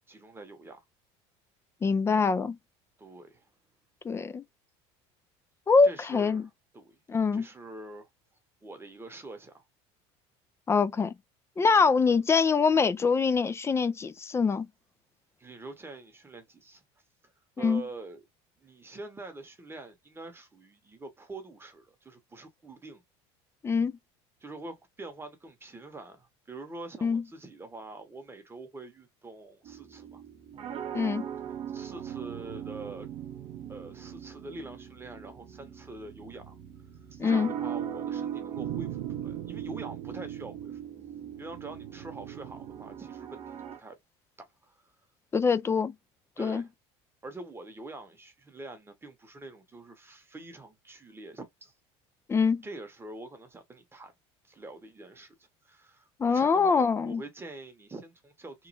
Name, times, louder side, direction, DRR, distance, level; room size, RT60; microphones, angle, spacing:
voice 1, 0.1-0.8 3.0-3.5 5.8-7.0 7.3-8.1 8.6-9.6 11.6-11.7 15.4-16.8 17.6-18.2 18.6-23.0 24.4-30.2 31.4-33.1 33.7-36.6 37.1-40.8 41.4-43.4 43.8-44.0 44.6-44.7 46.4-46.7 47.2-51.7 52.6-54.1 54.4-58.7, right 2 dB, 15° right, 0.9 m, -45 dB
voice 2, 1.8-2.6 4.0-4.4 5.7-6.4 7.1-7.5 10.7-11.1 11.6-14.7 17.6-17.8 23.6-23.9 27.0-27.2 30.9-31.3 37.2-37.5 45.3-45.9 46.4-46.6 52.3-52.6 56.2-57.2, left 5 dB, 20° left, 0.3 m, -24 dB
sound 1, 29.6-43.8, right 9 dB, 45° right, 0.7 m, -40 dB
sound 2, 30.5-43.1, right 15 dB, 85° right, 0.5 m, -46 dB
3.0 x 2.1 x 2.7 m
supercardioid pair, 105°, 14 cm